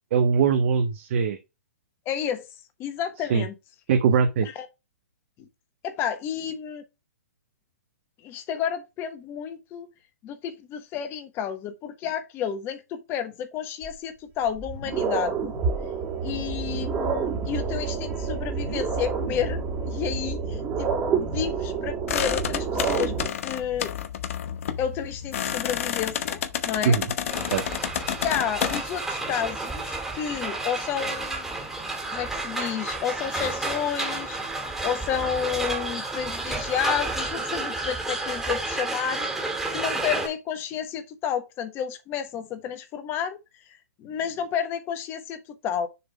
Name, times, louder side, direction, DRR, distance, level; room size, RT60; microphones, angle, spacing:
voice 1, 0.1-1.4 3.3-3.4 3.9-4.5 26.8-27.1 27.5-27.6, right 6 dB, 50° right, 0.8 m, -21 dB
voice 2, 2.0-2.5 2.8-3.5 4.4-4.7 5.4-5.5 5.8-6.8 8.2-9.9 10.2-15.5 16.2-19.6 19.9-23.9 24.8-27.0 28.1-31.4 32.1-39.3 39.7-43.4 44.0-45.9, left 9 dB, 25° left, 1.2 m, -31 dB
sound 1, 13.8-13.9 14.5-23.3, right 5 dB, 25° right, 2.0 m, -28 dB
sound 2, 22.1-28.8, left 9 dB, 55° left, 1.0 m, -30 dB
sound 3, 27.3-40.3, right 2 dB, 5° right, 2.1 m, -31 dB
6.7 x 3.6 x 4.8 m
hypercardioid pair, 135°, 8 cm